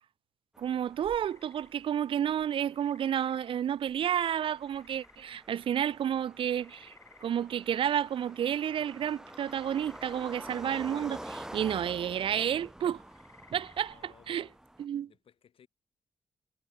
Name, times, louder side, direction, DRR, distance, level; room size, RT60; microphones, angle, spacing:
sound 1, 0.5-14.8, right 1 dB, 5° right, 3.1 m, -48 dB
voice 1, 0.6-6.9 7.2-13.0 13.5-14.4 14.8-15.1, right 9 dB, 65° right, 0.4 m, -31 dB
sound 2, 1.2-5.9 6.2-14.1, left 4 dB, 30° left, 5.5 m, -62 dB
voice 2, 13.9-14.6 15.0-15.7, left 8 dB, 70° left, 4.6 m, -59 dB
wide cardioid pair, 170°, 10 cm